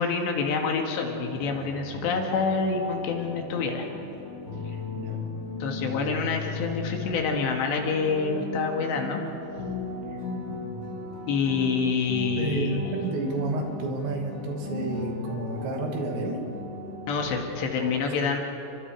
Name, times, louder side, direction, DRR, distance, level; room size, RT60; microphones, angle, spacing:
voice 1, 0.0-3.9 4.7-4.8 5.6-9.2 11.3-12.9 17.1-18.4, left 5 dB, 75° left, 2 dB, 4.2 m, -27 dB
sound 1, 1.2-17.8, left 3 dB, 20° left, 3.5 m, -37 dB
voice 2, 10.5-10.8 11.5-11.6 12.4-16.5 17.8-18.1, right 3 dB, 75° right, 2 dB, 4.8 m, -31 dB
30.0 x 24.0 x 4.8 m, 3.0 s
omnidirectional pair, 5.2 m